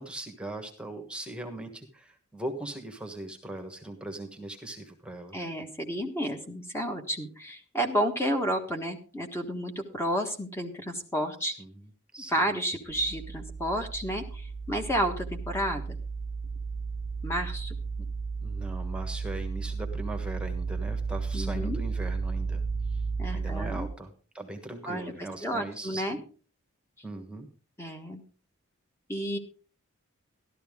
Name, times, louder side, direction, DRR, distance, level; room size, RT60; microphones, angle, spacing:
voice 1, 0.0-5.4 11.6-11.8 12.1-12.3 18.0-18.1 18.4-22.6 22.9-23.0 23.3-24.1 24.3-26.2 27.0-27.5, right 1 dB, 5° right, 5 dB, 1.3 m, -39 dB
voice 2, 5.3-11.5 12.3-16.0 17.2-17.8 21.3-21.8 23.2-23.9 24.8-26.2 27.8-28.2 29.1-29.4, equal, 10° left, 4 dB, 1.4 m, -31 dB
sound 1, 12.9-23.9, right 4 dB, 65° left, 3.5 m, -33 dB
13.0 x 13.0 x 3.7 m, 0.38 s
head